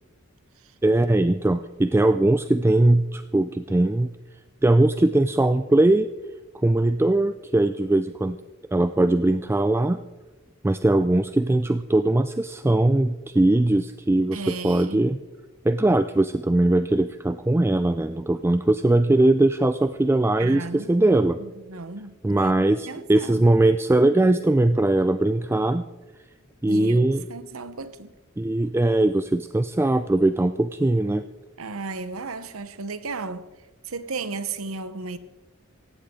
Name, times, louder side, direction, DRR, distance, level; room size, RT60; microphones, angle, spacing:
voice 1, 0.8-4.1 4.6-6.1 6.5-8.4 8.7-10.0 10.6-15.2 15.6-21.4 22.2-25.9 26.6-27.2 28.4-31.2, right 2 dB, 10° right, 0.3 m, -20 dB
voice 2, 14.3-15.1 20.4-23.4 26.6-28.1 31.6-33.5 33.8-35.2, right 3 dB, 85° right, 0.9 m, -35 dB
17.5 x 15.5 x 3.7 m
head